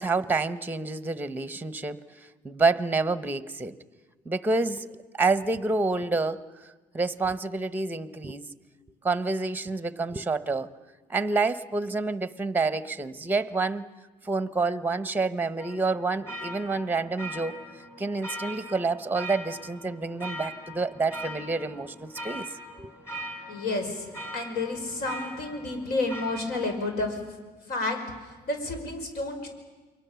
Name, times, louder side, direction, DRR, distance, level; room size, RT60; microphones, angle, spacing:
voice 1, 0.0-2.0 2.4-3.8 4.2-6.4 6.9-8.4 9.0-10.7 11.1-13.8 14.2-17.6 18.0-22.5 22.8-22.9, right 3 dB, 10° right, 14 dB, 0.9 m, -28 dB
sound 1, 15.6-27.0, equal, 15° left, 5.0 m, -41 dB
voice 2, 23.5-27.2 27.7-29.5, left 2 dB, 70° left, 5 dB, 5.5 m, -31 dB
29.0 x 23.0 x 7.0 m, 1.3 s
cardioid pair, 110°, 17 cm